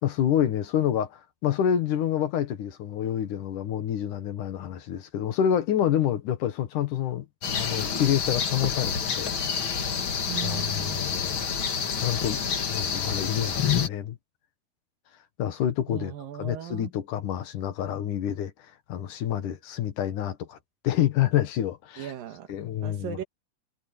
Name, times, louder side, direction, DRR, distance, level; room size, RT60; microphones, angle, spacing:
voice 1, 0.0-7.3 7.5-9.3 10.4-11.5 12.0-12.4 12.7-14.2 15.4-18.5 18.9-20.6 20.8-22.1 22.5-23.2, left 10 dB, 65° left, 2.9 m, -28 dB
sound 1, 7.4-13.9, left 7 dB, 45° left, 2.0 m, -28 dB
voice 2, 10.3-11.1 15.9-16.9 22.0-22.5 22.8-23.2, right 11 dB, 80° right, 3.2 m, -37 dB
omnidirectional pair, 4.0 m